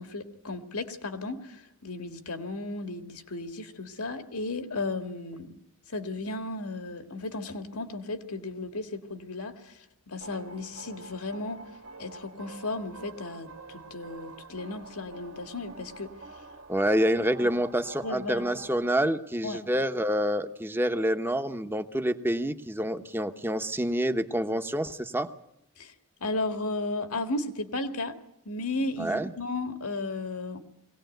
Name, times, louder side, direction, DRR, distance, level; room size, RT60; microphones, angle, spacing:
voice 1, 0.0-5.6 5.9-11.6 12.0-16.1 17.4-17.5 18.0-18.4 19.4-19.6 25.8-25.9 26.2-28.1 28.5-30.6, left 2 dB, 80° left, 8 dB, 1.9 m, -34 dB
sound 1, 10.2-18.9, right 3 dB, 75° right, 2.2 m, -47 dB
voice 2, 16.7-25.3 29.0-29.3, equal, 10° right, 9 dB, 0.9 m, -27 dB
21.5 x 18.0 x 9.2 m, 0.81 s
head